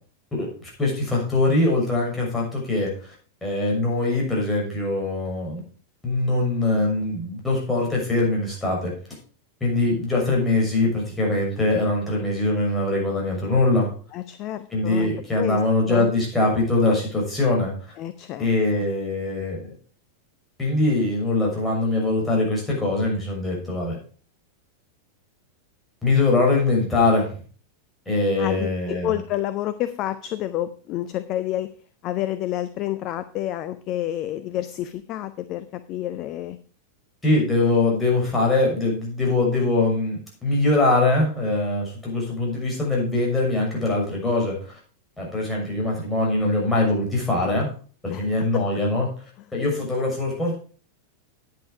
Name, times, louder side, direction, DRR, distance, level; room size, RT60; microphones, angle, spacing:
voice 1, 0.8-3.1 3.4-5.6 6.0-8.9 9.6-13.9 14.7-17.9 18.4-19.7 20.6-24.0 26.0-27.3 28.1-29.2 37.2-44.8 45.2-47.7 48.0-49.1 49.5-50.6, left 2 dB, 10° left, -3 dB, 6.4 m, -22 dB
voice 2, 14.1-15.6 15.9-16.1 18.0-18.5 28.4-31.7 32.0-36.6 48.1-48.7, left 13 dB, 40° left, 12 dB, 0.6 m, -29 dB
10.5 x 8.6 x 4.8 m, 0.40 s
figure-of-eight pair, 90°, 0 cm